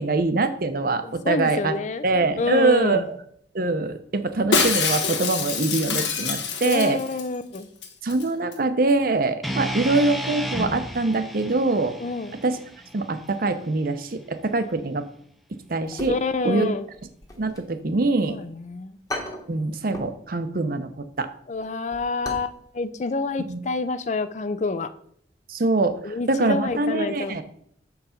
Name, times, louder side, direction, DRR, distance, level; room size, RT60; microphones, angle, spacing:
voice 1, 0.0-1.7 2.0-3.1 3.5-7.0 8.0-12.0 12.4-12.6 12.9-15.1 15.7-16.2 16.4-16.7 17.4-18.4 19.5-21.3 23.4-23.6 25.5-27.4, right 3 dB, 50° right, 10 dB, 0.7 m, -24 dB
voice 2, 1.0-2.0 2.4-3.0 6.6-7.7 12.0-12.4 16.1-16.8 18.3-19.0 21.5-24.9 26.0-27.4, left 3 dB, 40° left, 12 dB, 0.4 m, -27 dB
Shatter, 4.5-7.3 7.5-7.6 7.8-8.2 8.5-8.6, left 5 dB, 85° left, 1.2 m, -25 dB
sound 1, 9.4-13.6, equal, ahead, 0.6 m, -32 dB
sound 2, 15.8-16.6 16.9-18.3 18.7-18.8 19.1-20.2 20.5-20.7 21.1-22.6 22.8-22.9 23.4-23.7 23.9-24.0, left 1 dB, 20° left, 1.1 m, -37 dB
6.8 x 4.8 x 5.0 m, 0.65 s
head